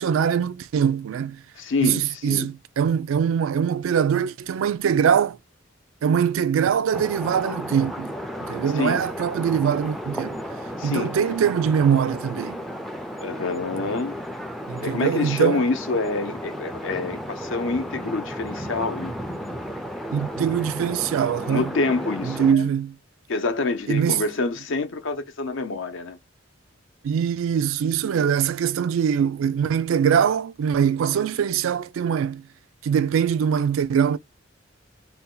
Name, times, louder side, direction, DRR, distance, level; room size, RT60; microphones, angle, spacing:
voice 1, 0.0-1.4 1.8-5.4 6.0-8.1 8.5-10.4 10.8-12.6 14.7-15.6 20.1-21.7 22.2-23.0 23.9-24.2 27.0-32.4 32.8-34.2, right 8 dB, 80° right, 0.3 m, -22 dB
voice 2, 1.6-2.5 8.7-9.0 10.8-11.3 13.2-14.1 14.8-19.1 21.5-22.7 23.3-26.2, left 3 dB, 70° left, 0.6 m, -27 dB
sound 1, 6.9-22.5, equal, ahead, 0.3 m, -34 dB
2.7 x 2.2 x 3.7 m
head